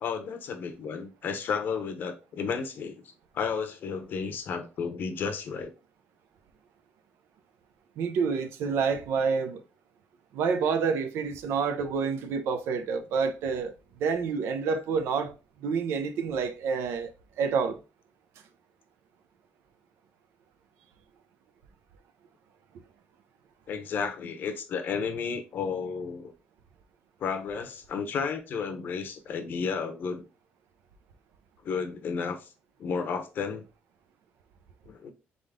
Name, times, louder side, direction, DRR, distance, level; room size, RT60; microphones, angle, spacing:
voice 1, 0.0-3.0 3.3-5.7 23.7-26.3 27.2-30.2 31.6-32.5 32.8-33.6 34.9-35.1, left 5 dB, 50° left, 0.8 m, -32 dB
voice 2, 8.0-9.6 10.3-15.3 15.6-17.1 17.4-17.8, right 5 dB, 80° right, 0.7 m, -28 dB
3.8 x 3.7 x 3.6 m
cardioid pair, 145°, 4 cm